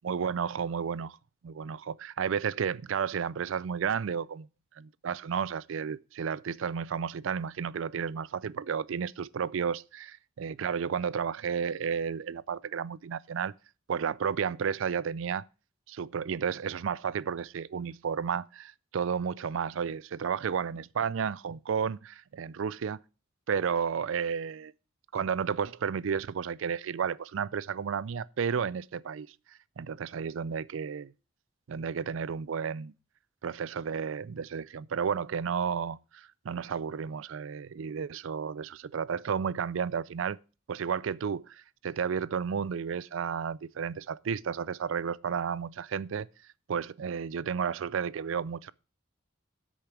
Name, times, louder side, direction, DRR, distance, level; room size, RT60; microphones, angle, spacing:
voice 1, 0.0-1.2 1.4-4.5 4.8-13.5 13.9-15.4 15.9-23.0 23.5-24.7 25.1-29.3 29.8-31.1 31.7-32.9 33.4-40.4 40.7-46.3 46.7-48.7, right 7 dB, 75° right, 0.4 m, -32 dB
8.3 x 6.5 x 6.0 m
head